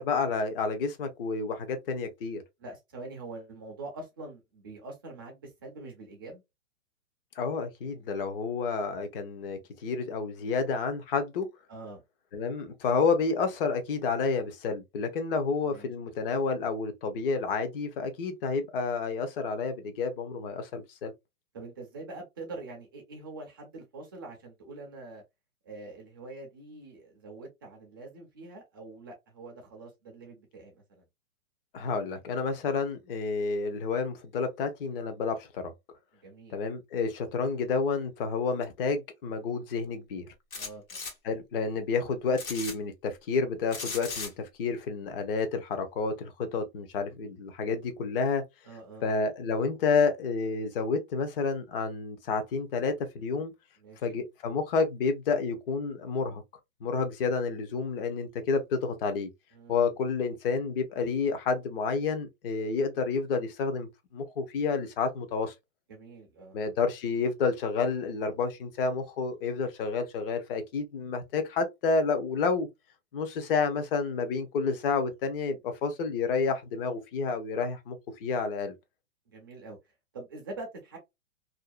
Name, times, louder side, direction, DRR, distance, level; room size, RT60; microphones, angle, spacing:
voice 1, 0.0-2.4 7.4-11.5 12.3-21.1 31.7-35.7 36.5-40.2 41.2-48.4 49.0-53.5 54.0-56.4 56.8-59.3 59.7-65.5 66.5-72.7 73.1-78.0 78.2-78.7, left 4 dB, 45° left, 0.7 m, -30 dB
voice 2, 2.6-6.4 11.7-12.0 15.6-15.9 21.5-25.2 25.6-31.0 36.2-36.6 40.5-40.8 48.6-49.2 53.8-54.2 59.5-59.9 65.9-66.7 79.3-79.8 80.1-81.0, right 2 dB, 20° right, 0.3 m, -44 dB
sound 1, 40.5-41.1 42.3-42.7 43.7-44.3, left 4 dB, 85° left, 1.4 m, -36 dB
2.6 x 2.1 x 2.3 m
hypercardioid pair, 145°, 40 cm